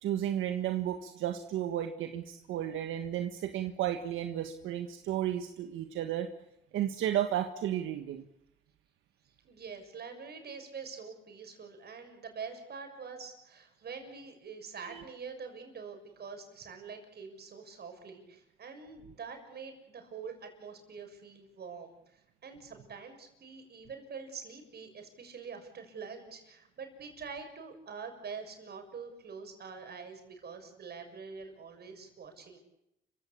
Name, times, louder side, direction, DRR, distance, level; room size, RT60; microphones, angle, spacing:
voice 1, 0.0-6.3 6.7-8.2 14.9-15.0, right 11 dB, 85° right, 6 dB, 1.6 m, -33 dB
voice 2, 9.4-32.6, right 5 dB, 55° right, 5 dB, 6.8 m, -45 dB
29.5 x 16.5 x 8.5 m, 0.86 s
cardioid pair, 90°, 20 cm